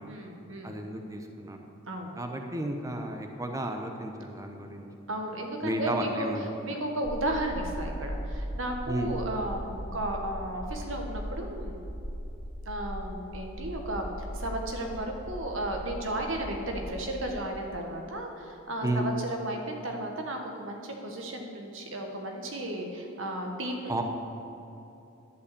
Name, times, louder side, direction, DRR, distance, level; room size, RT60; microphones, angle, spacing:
voice 1, 0.1-0.8 1.9-2.2 5.1-6.3 6.6-11.8 12.7-24.0, right 1 dB, 70° right, 2 dB, 1.4 m, -34 dB
voice 2, 0.6-1.6 2.2-4.9 5.6-6.5 8.9-9.1 18.8-19.1 23.9-24.0, right 1 dB, 15° right, 4 dB, 0.7 m, -32 dB
sound 1, 7.0-17.5, equal, 90° left, 1.7 m, -39 dB
11.0 x 5.6 x 8.3 m, 2.9 s
head